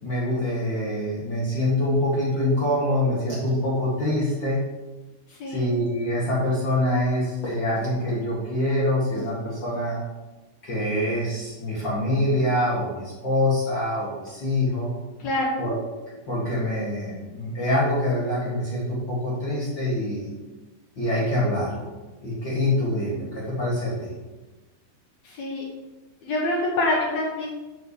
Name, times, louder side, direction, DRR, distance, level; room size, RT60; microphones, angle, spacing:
voice 1, 0.0-4.6 5.5-10.0 10.6-14.9 15.6-15.7 16.3-20.3 21.0-21.9 22.2-24.1, left 1 dB, 55° left, -6 dB, 1.2 m, -25 dB
voice 2, 5.3-5.7 15.2-15.6 25.2-25.6 26.2-27.5, left 2 dB, 80° left, -3 dB, 1.5 m, -26 dB
7.6 x 5.4 x 7.0 m, 1.2 s
omnidirectional pair, 4.9 m